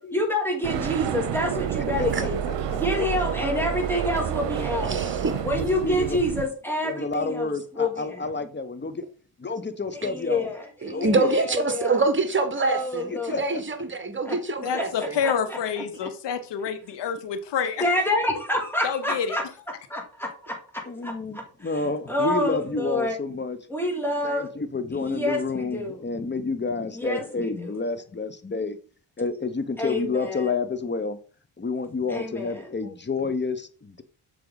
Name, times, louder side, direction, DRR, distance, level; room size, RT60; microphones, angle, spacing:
voice 1, 0.1-2.4 2.7-5.0 5.4-8.2 10.0-11.9 12.6-13.4 14.3-14.4 14.7-14.8 15.2-15.6 17.8-19.4 19.9-20.5 21.0-21.4 21.7-21.8 22.1-23.2 23.7-24.5 24.9-26.0 26.9-27.7 29.8-30.5 32.1-32.7, left 1 dB, 5° left, 2.6 m, -27 dB
sound 1, 0.6-6.5, right 9 dB, 80° right, 0.8 m, -29 dB
voice 2, 2.0-2.3 2.7-2.8 5.3-6.2 6.8-9.0 9.4-10.5 10.8-11.3 13.1-13.6 20.8-23.6 24.2-28.8 29.2-31.2 31.6-34.0, left 4 dB, 25° left, 1.0 m, -29 dB
voice 3, 4.8-5.4 10.8-15.2, right 3 dB, 25° right, 1.4 m, -25 dB
voice 4, 14.6-17.9 18.8-19.4, left 7 dB, 70° left, 1.0 m, -28 dB
6.8 x 4.7 x 4.0 m
supercardioid pair, 55°, 43 cm